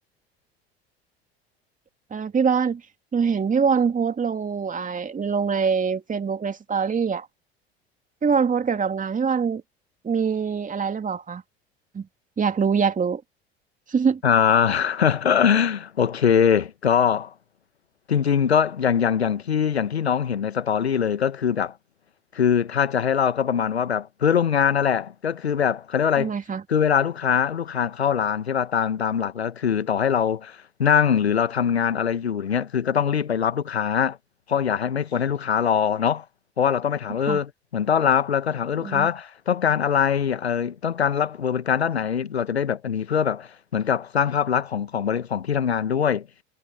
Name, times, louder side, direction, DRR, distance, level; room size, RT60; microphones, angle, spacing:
voice 1, 2.1-2.8 3.1-7.3 8.2-9.6 10.0-11.4 11.9-12.1 12.4-13.2 13.9-14.2 26.2-26.6 37.3-37.4 38.8-39.1, right 6 dB, 25° right, 2.7 m, -24 dB
voice 2, 14.2-17.3 18.1-21.7 22.3-26.3 26.7-34.2 34.5-36.2 36.6-46.3, left 7 dB, 85° left, 1.5 m, -22 dB
figure-of-eight pair, 70°, 31 cm